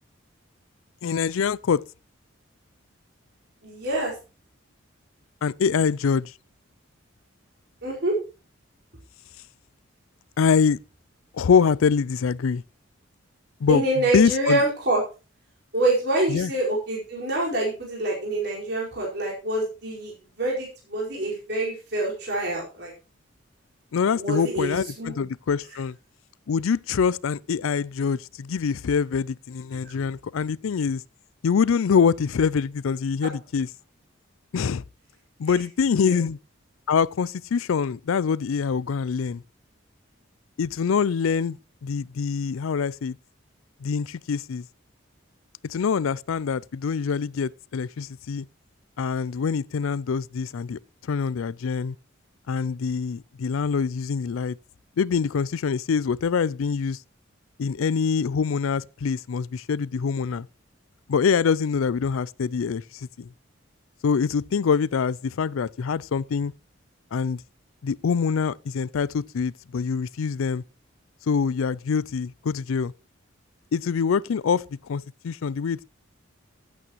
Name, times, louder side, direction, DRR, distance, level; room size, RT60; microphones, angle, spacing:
voice 1, 1.0-1.8 5.4-6.3 10.4-10.8 11.3-12.6 13.6-13.8 14.1-14.6 16.3-16.5 23.9-26.0 26.5-31.0 31.4-33.7 34.5-34.8 35.4-36.4 36.9-39.4 40.6-41.6 41.8-43.2 43.8-44.6 45.6-48.5 49.0-50.8 51.1-51.9 52.5-54.6 55.0-57.0 57.6-60.5 61.1-63.3 64.0-66.5 67.1-67.4 67.8-70.6 71.3-72.9 73.7-74.6 74.9-75.8, left 6 dB, 80° left, 0.4 m, -24 dB
voice 2, 3.6-4.1 7.8-8.1 13.7-15.0 15.7-22.9 24.1-25.1 29.8-29.9 36.1-36.2, right 1 dB, 50° right, 4.8 m, -26 dB
15.0 x 8.5 x 3.0 m
head